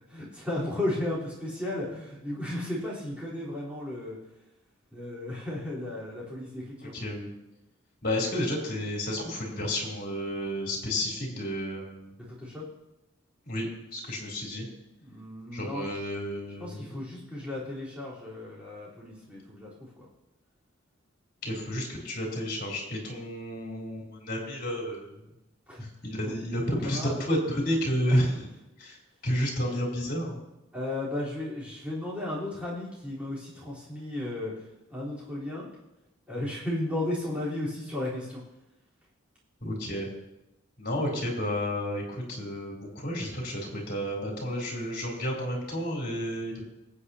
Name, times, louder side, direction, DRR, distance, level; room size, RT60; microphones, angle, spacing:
voice 1, 0.1-4.2 4.9-6.9 12.2-12.6 15.0-15.9 16.6-20.1 25.7-25.8 26.2-26.3 26.7-27.2 28.0-28.3 30.7-34.6 34.9-35.7 36.3-38.4, left 1 dB, 5° right, -8 dB, 3.9 m, -34 dB
voice 2, 6.8-7.3 8.0-12.1 13.5-14.7 15.5-16.9 21.4-25.2 26.0-28.5 28.8-29.0 29.2-30.4 39.6-40.1 40.8-46.6, equal, 50° left, -3 dB, 3.5 m, -31 dB
23.0 x 8.6 x 2.9 m, 0.95 s
head